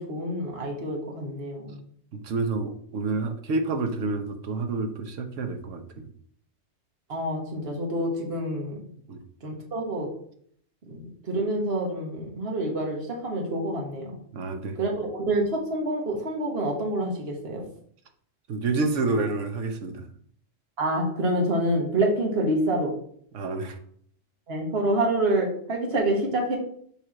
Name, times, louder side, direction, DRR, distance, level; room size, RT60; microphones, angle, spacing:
voice 1, 0.0-1.8 7.1-8.8 9.4-10.1 10.9-14.1 14.8-17.6 20.8-22.9 24.5-26.6, right 1 dB, 50° right, 0 dB, 1.7 m, -27 dB
voice 2, 2.1-6.1 9.1-9.2 14.3-14.8 18.5-20.1 23.3-23.8, right 3 dB, 70° right, 6 dB, 1.3 m, -29 dB
7.2 x 3.5 x 5.9 m, 0.62 s
omnidirectional pair, 1.3 m